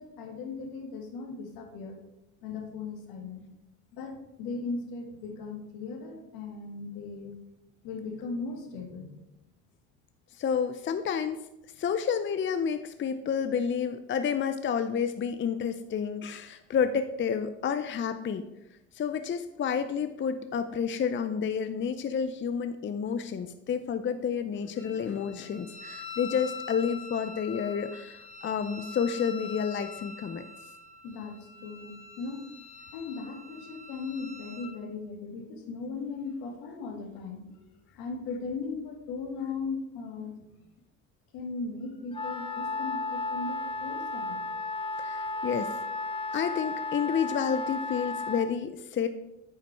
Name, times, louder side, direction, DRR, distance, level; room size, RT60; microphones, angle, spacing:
voice 1, 0.0-2.0 2.4-3.5 3.9-7.3 7.8-9.2 31.0-32.5 32.9-40.5 41.3-44.4, left 4 dB, 75° left, 3 dB, 1.9 m, -38 dB
voice 2, 10.4-11.4 11.8-18.5 18.9-30.5 45.0-45.8 46.3-49.1, left 7 dB, 35° left, 10 dB, 0.6 m, -30 dB
Wind instrument woodwind instrument, 24.8-34.7, left 5 dB, 10° right, 2.6 m, -44 dB
Wind instrument woodwind instrument 2, 42.1-48.5, left 3 dB, 15° left, 1.0 m, -34 dB
9.4 x 5.2 x 4.6 m, 0.89 s
hypercardioid pair, 70°, 36 cm